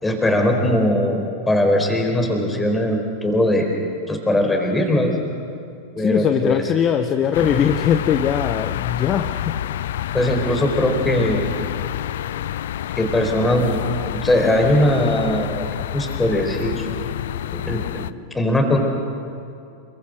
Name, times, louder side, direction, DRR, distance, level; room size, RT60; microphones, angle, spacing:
voice 1, 0.0-3.7 4.1-5.1 5.9-6.7 10.1-11.5 13.0-13.8 14.2-15.7 15.9-16.9 17.5-17.8 18.3-18.8, left 1 dB, 10° left, 3 dB, 4.5 m, -20 dB
voice 2, 6.0-9.6, left 9 dB, 30° left, 8 dB, 1.0 m, -21 dB
sound 1, 7.3-18.1, left 12 dB, 60° left, 0.6 m, -28 dB
28.0 x 23.5 x 6.6 m, 2.5 s
figure-of-eight pair, 90°, 0 cm